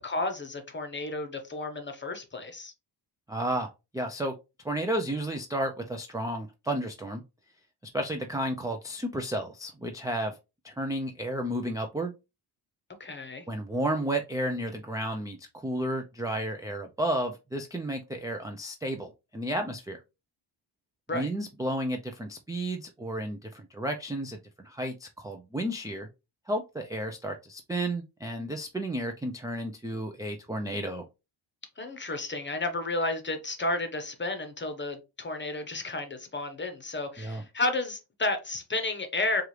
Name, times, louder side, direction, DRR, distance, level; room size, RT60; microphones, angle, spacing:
voice 1, 0.0-2.7 13.0-13.5 21.1-21.3 31.8-39.4, left 2 dB, 25° left, 0.9 m, -32 dB
voice 2, 3.3-3.7 3.9-4.3 4.6-7.2 7.9-10.4 10.6-12.1 13.5-20.0 21.1-26.1 26.5-31.1 37.2-37.4, right 1 dB, 10° right, 0.4 m, -32 dB
4.6 x 2.5 x 3.2 m
cardioid pair, 100°, 46 cm